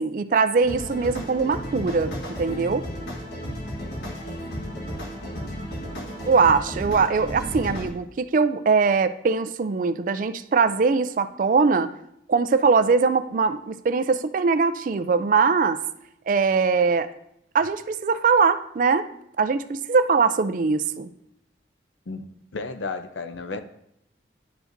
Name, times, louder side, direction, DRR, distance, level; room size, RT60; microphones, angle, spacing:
voice 1, 0.0-2.1 2.4-2.9 6.3-11.9 12.3-15.8 16.3-17.1 17.5-19.1 19.4-21.1, right 5 dB, 45° right, 12 dB, 0.3 m, -21 dB
sound 1, 0.6-7.9, equal, 65° left, 1.4 m, -33 dB
voice 2, 22.5-23.6, left 4 dB, 85° left, 10 dB, 0.6 m, -32 dB
11.0 x 4.9 x 2.6 m, 0.77 s
head